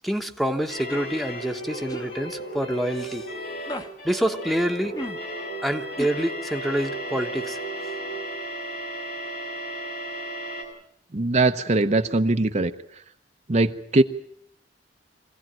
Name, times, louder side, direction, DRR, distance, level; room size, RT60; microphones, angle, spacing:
voice 1, 0.0-3.3 4.0-4.9 5.6-7.6, equal, ahead, 6 dB, 1.1 m, -27 dB
sound 1, 0.7-10.6, right 1 dB, 65° left, 5.7 m, -34 dB
sound 2, 0.9-1.1 1.9-2.1 3.7-3.9 4.9-5.2 6.0-6.1, left 1 dB, 20° left, 1.2 m, -34 dB
voice 2, 11.1-12.7 13.5-14.0, right 2 dB, 40° right, 6 dB, 0.8 m, -21 dB
23.5 x 16.0 x 9.0 m, 0.72 s
head